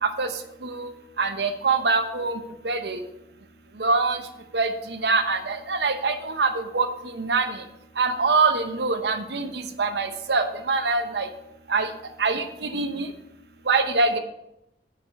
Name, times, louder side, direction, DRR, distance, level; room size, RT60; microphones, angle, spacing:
voice 1, 1.2-2.4 2.6-3.0 3.8-4.2 4.5-6.9 7.2-7.5 8.0-11.3 11.7-11.9 12.2-13.1 13.7-14.2, right 4 dB, 75° right, 8 dB, 0.9 m, -24 dB
9.3 x 5.3 x 6.4 m, 0.83 s
head